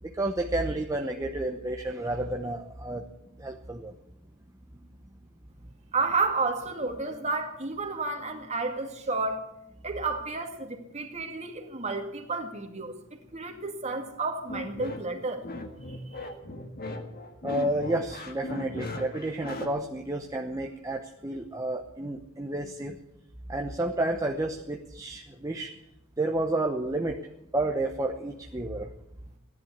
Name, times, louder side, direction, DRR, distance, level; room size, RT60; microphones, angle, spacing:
voice 1, 0.0-3.1 3.4-3.9 17.4-23.0 23.5-25.8 26.2-27.2 27.5-28.9, right 1 dB, 15° right, 2 dB, 0.9 m, -31 dB
voice 2, 5.9-9.5 9.8-13.0 13.3-15.4, right 3 dB, 35° right, 4 dB, 2.1 m, -31 dB
sound 1, 14.5-19.7, left 2 dB, 50° left, 1.8 m, -38 dB
15.5 x 11.0 x 8.4 m, 0.82 s
head